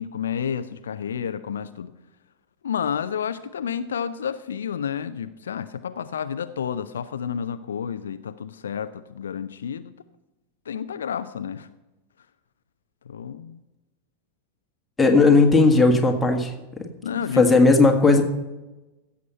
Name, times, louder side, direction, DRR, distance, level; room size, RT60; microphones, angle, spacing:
voice 1, 0.0-1.9 2.6-9.9 10.7-11.7 13.1-13.6 17.0-17.5, left 8 dB, 65° left, 11 dB, 0.5 m, -30 dB
voice 2, 15.0-16.5 17.4-18.2, left 3 dB, 10° left, 3 dB, 1.7 m, -16 dB
15.5 x 7.3 x 5.4 m, 1.1 s
figure-of-eight pair, 90°, 0 cm